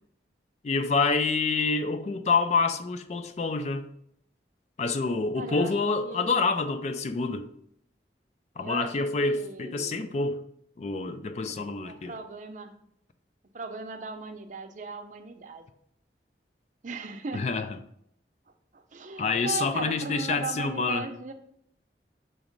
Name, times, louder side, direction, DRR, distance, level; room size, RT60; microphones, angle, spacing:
voice 1, 0.6-3.9 4.8-7.5 8.6-10.4 10.8-12.1 17.3-17.7 19.2-21.1, left 4 dB, 40° left, 0.4 m, -27 dB
voice 2, 5.4-5.7 6.0-6.6 8.6-8.9 9.2-10.1 11.8-12.7 13.5-15.6 16.8-17.4 18.7-21.3, right 4 dB, 45° right, 0.5 m, -38 dB
6.3 x 3.0 x 5.1 m
head